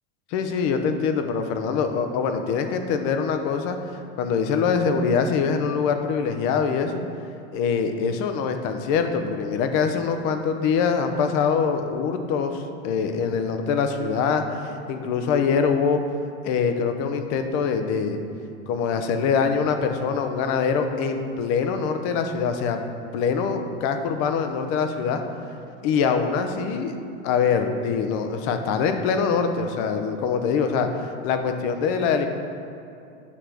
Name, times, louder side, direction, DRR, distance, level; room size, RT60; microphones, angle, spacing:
voice 1, 0.3-3.8 4.2-7.0 7.5-16.0 16.4-18.2 18.7-22.8 23.1-25.2 25.8-27.0 27.2-32.3, left 6 dB, 60° left, 7 dB, 0.8 m, -24 dB
8.4 x 3.3 x 5.9 m, 2.5 s
supercardioid pair, 105°, 31 cm